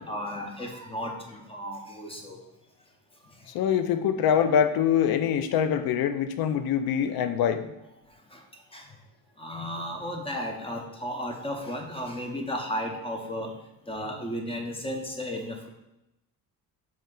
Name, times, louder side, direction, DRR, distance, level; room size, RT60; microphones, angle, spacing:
voice 1, 0.0-2.4 8.3-8.4 8.7-8.9 9.4-13.5 13.9-15.7, equal, 15° left, 2 dB, 0.6 m, -34 dB
voice 2, 3.5-7.7, left 8 dB, 75° left, 10 dB, 0.5 m, -24 dB
4.2 x 3.2 x 3.7 m, 0.92 s
cardioid pair, 105°, 36 cm